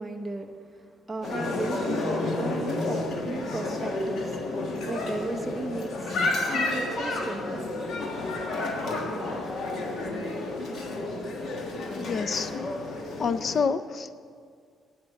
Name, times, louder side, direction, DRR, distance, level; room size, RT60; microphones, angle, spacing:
voice 1, 0.0-4.4 4.8-7.7 8.4-8.5, right 2 dB, 10° right, 1 dB, 0.8 m, -35 dB
sound 1, 1.2-13.6, left 2 dB, 55° left, 1.5 m, -31 dB
voice 2, 11.9-12.5 13.2-14.1, left 5 dB, 40° left, 12 dB, 0.5 m, -28 dB
9.3 x 8.8 x 7.4 m, 2.1 s
cardioid pair, 160°, 0 cm